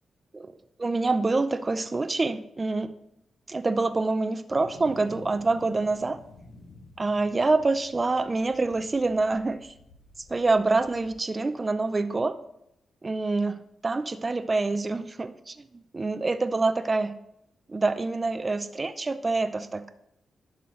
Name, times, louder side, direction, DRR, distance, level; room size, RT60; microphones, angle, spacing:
voice 1, 0.8-2.9 3.5-6.2 7.0-9.7 10.3-12.4 13.0-17.1 17.7-19.9, right 3 dB, 30° right, 10 dB, 0.5 m, -26 dB
sound 1, 4.6-11.1, left 2 dB, 75° left, 1.6 m, -50 dB
11.0 x 5.6 x 3.1 m, 0.79 s
cardioid pair, 80°, 0 cm